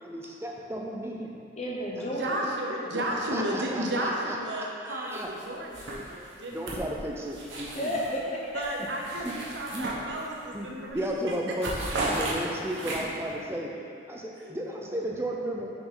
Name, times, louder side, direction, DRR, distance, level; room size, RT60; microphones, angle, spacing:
voice 1, 0.0-1.4 2.7-5.3 6.5-7.9 9.2-9.3 9.7-9.9 10.5-11.7 12.0-13.7 14.1-15.7, right 1 dB, 15° right, -1 dB, 0.5 m, -34 dB
voice 2, 1.6-2.5 7.7-8.6 14.7-15.1, equal, 35° left, -4 dB, 0.7 m, -33 dB
voice 3, 2.2-6.6 8.5-11.5 14.3-14.5, right 1 dB, 65° right, -2 dB, 0.9 m, -33 dB
sound 1, 5.1-5.4 5.7-8.2 8.6-10.5 10.8-11.1 11.3-13.3, right 2 dB, 80° right, 1.2 m, -35 dB
6.4 x 5.1 x 3.9 m, 2.4 s
head